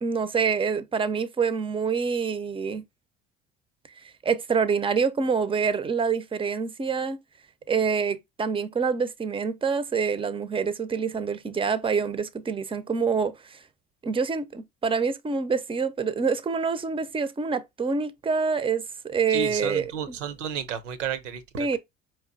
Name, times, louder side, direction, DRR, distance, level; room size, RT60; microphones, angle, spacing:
voice 1, 0.0-2.8 4.2-7.2 7.7-13.6 14.0-20.2 21.6-21.8, right 5 dB, 15° right, 0.5 m, -26 dB
voice 2, 19.3-21.8, right 8 dB, 75° right, 0.7 m, -32 dB
5.0 x 3.0 x 2.6 m
figure-of-eight pair, 60°, 37 cm